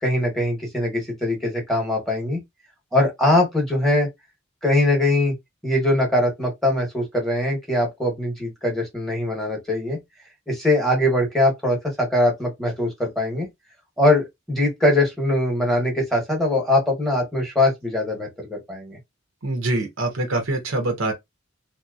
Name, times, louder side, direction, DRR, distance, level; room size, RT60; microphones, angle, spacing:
voice 1, 0.0-2.4 2.9-4.1 4.6-5.3 5.6-10.0 10.5-13.5 14.0-19.0, left 1 dB, ahead, 1.0 m, -22 dB
voice 2, 19.4-21.1, right 2 dB, 75° right, 0.8 m, -24 dB
2.8 x 2.0 x 2.4 m
head